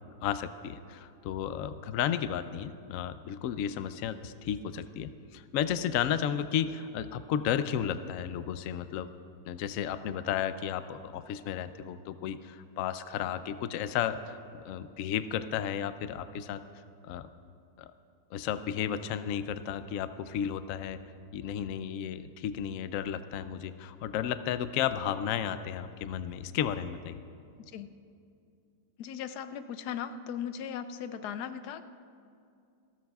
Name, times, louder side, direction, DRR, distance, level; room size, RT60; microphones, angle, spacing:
voice 1, 0.2-9.1 9.5-16.6 17.0-17.3 17.8-17.9 18.3-21.0 21.3-27.2, left 9 dB, 90° left, 12 dB, 0.7 m, -33 dB
voice 2, 29.0-31.8, left 8 dB, 70° left, 11 dB, 1.0 m, -38 dB
28.0 x 13.5 x 2.4 m, 2.5 s
omnidirectional pair, 2.0 m